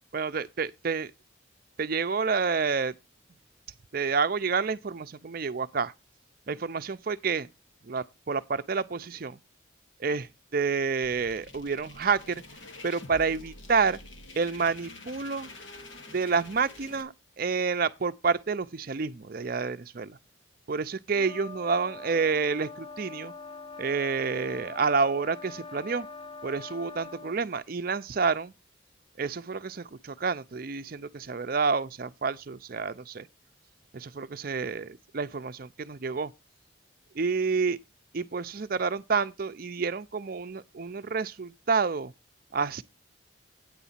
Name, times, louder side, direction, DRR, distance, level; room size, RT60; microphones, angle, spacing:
voice 1, 0.1-1.1 1.8-2.9 3.9-5.9 6.5-7.5 7.8-9.4 10.0-12.4 12.8-14.0 14.4-15.5 16.1-20.2 20.7-23.3 23.8-26.1 26.4-28.5 29.2-33.3 33.9-36.3 37.1-37.8 38.1-42.1 42.5-42.8, right 5 dB, 45° right, 0.5 m, -29 dB
sound 1, 11.0-17.0, left 2 dB, 75° left, 1.4 m, -47 dB
sound 2, 21.1-27.4, left 4 dB, 25° left, 0.6 m, -43 dB
9.3 x 4.0 x 7.3 m
head